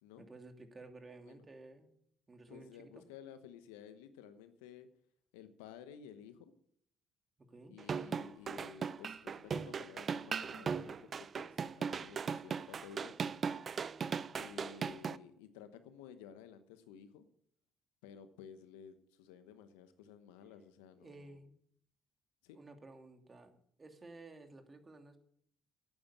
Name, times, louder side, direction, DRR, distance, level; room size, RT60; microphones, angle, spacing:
voice 1, 0.2-1.9 2.3-3.0 7.4-7.7 21.0-21.5 22.5-25.2, right 2 dB, 30° right, 5 dB, 2.7 m, -54 dB
voice 2, 2.5-4.9 5.3-6.5 7.7-11.1 11.3-13.2 14.4-17.3 18.0-21.4 22.4-22.6, left 8 dB, 85° left, 10 dB, 1.1 m, -54 dB
sound 1, 7.8-15.2, right 6 dB, 45° right, 0.6 m, -38 dB
11.5 x 8.9 x 8.8 m, 0.67 s
hypercardioid pair, 60°, 0 cm